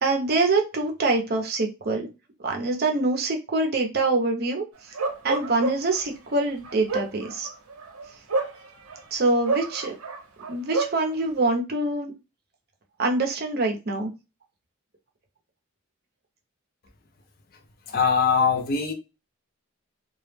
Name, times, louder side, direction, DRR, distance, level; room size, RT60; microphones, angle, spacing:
voice 1, 0.0-2.0 2.4-4.6 5.2-7.5 9.1-9.9 10.5-12.1 13.0-14.1, right 2 dB, 45° right, 0.5 m, -25 dB
Bark, 4.9-6.0 6.6-9.0 9.5-11.0, right 3 dB, 85° right, 0.7 m, -28 dB
voice 2, 17.9-18.9, left 6 dB, 45° left, 0.4 m, -22 dB
2.3 x 2.0 x 3.2 m
head